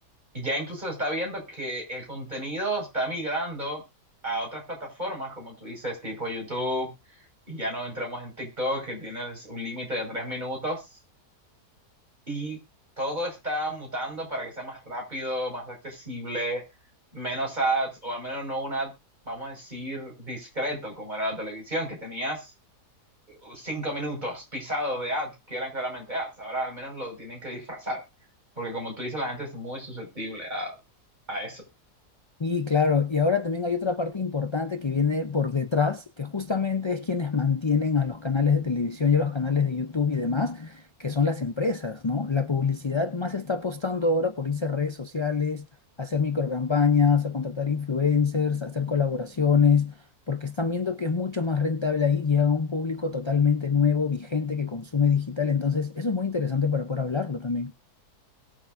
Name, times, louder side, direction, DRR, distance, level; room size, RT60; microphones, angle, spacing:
voice 1, 0.3-3.8 4.2-6.9 7.5-10.8 12.3-12.6 13.0-16.6 17.1-18.9 19.2-22.5 23.3-28.0 28.6-30.8 31.3-31.6, right 1 dB, 25° right, 5.8 m, -32 dB
voice 2, 32.4-45.6 46.0-49.9 50.3-57.7, left 5 dB, 45° left, 0.3 m, -25 dB
22.5 x 7.6 x 2.6 m
omnidirectional pair, 1.7 m